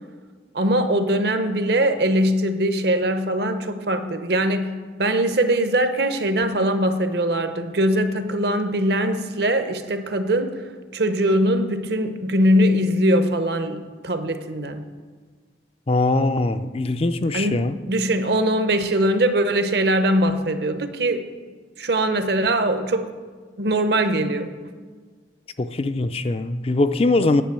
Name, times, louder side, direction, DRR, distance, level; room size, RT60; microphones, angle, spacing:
voice 1, 0.5-10.6 10.9-14.8 17.3-21.2 21.8-23.1 23.6-24.5, right 1 dB, 60° right, 9 dB, 0.9 m, -21 dB
voice 2, 15.9-17.7 25.6-27.4, left 2 dB, 30° left, 11 dB, 0.4 m, -21 dB
10.0 x 6.1 x 8.9 m, 1.5 s
head